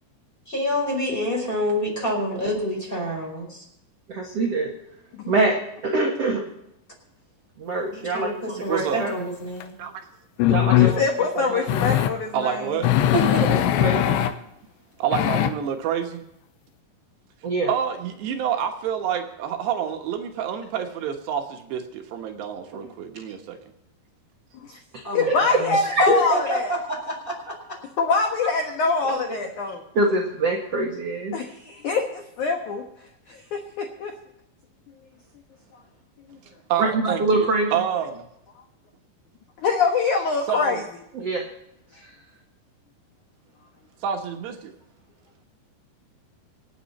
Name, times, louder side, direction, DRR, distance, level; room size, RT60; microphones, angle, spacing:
voice 1, 0.5-3.7 7.8-9.7 13.1-13.8 25.0-25.8 26.0-27.0 28.4-28.5, equal, 10° left, 0 dB, 4.5 m, -27 dB
voice 2, 4.1-4.7 5.3-5.6 5.8-6.4 7.6-9.1 10.5-11.9 13.4-14.2 17.4-17.7 22.7-22.8 25.3-25.6 25.9-26.1 29.9-31.4 36.8-37.8 41.1-41.4 41.9-42.1, right 2 dB, 55° right, 0 dB, 1.8 m, -25 dB
voice 3, 8.7-9.1 9.8-10.0 12.3-13.0 15.0-16.2 17.7-23.6 36.7-38.2 40.5-40.8 44.0-44.7, right 8 dB, 75° right, 4 dB, 3.3 m, -28 dB
sound 1, 9.6-9.7 10.4-11.0 11.7-12.1 12.8-14.3 15.1-15.5, left 12 dB, 90° left, 3.3 m, -20 dB
voice 4, 10.8-12.8 24.7-24.8 25.1-26.7 28.0-29.8 31.3-32.8 33.3-34.1 39.6-40.8, left 4 dB, 65° left, 3 dB, 2.0 m, -24 dB
26.5 x 9.4 x 4.2 m, 0.82 s
omnidirectional pair, 5.2 m